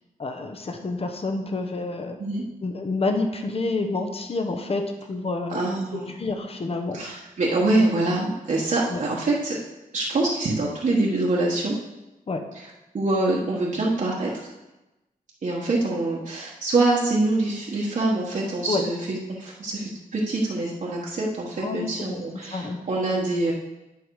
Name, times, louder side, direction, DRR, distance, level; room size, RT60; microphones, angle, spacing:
voice 1, 0.2-2.2 2.6-5.6 6.2-7.0 8.9-9.0 12.3-12.4 18.7-18.8 21.6-22.2 22.5-22.8, left 3 dB, 40° left, 5 dB, 1.0 m, -28 dB
voice 2, 5.5-6.1 6.9-9.6 9.9-11.8 12.5-12.7 12.9-14.3 15.4-23.5, right 2 dB, 60° right, -4 dB, 1.4 m, -25 dB
10.5 x 5.7 x 4.8 m, 1.0 s
wide cardioid pair, 150°, 15 cm